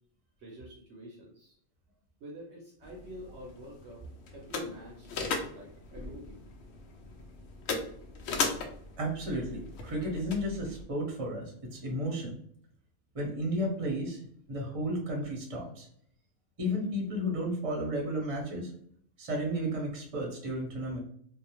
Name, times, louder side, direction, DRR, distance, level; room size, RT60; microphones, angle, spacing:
voice 1, 0.4-1.6 2.2-4.1 4.3-6.4, equal, 60° right, -2 dB, 0.8 m, -47 dB
sound 1, 2.8-10.8, left 4 dB, 65° left, 0.7 m, -38 dB
voice 2, 9.0-12.4 13.1-14.2 14.5-15.9 16.6-18.7 19.2-21.0, equal, 30° right, -1 dB, 0.6 m, -33 dB
2.6 x 2.0 x 2.9 m, 0.63 s
omnidirectional pair, 1.5 m